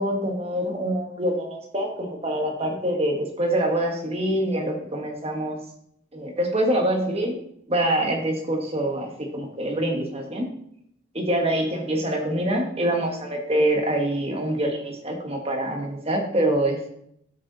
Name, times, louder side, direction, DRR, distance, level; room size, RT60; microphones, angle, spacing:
voice 1, 0.0-5.6 6.1-7.4 7.7-10.5 11.1-16.9, right 1 dB, 30° right, 2 dB, 1.4 m, -25 dB
8.8 x 6.6 x 4.0 m, 0.72 s
head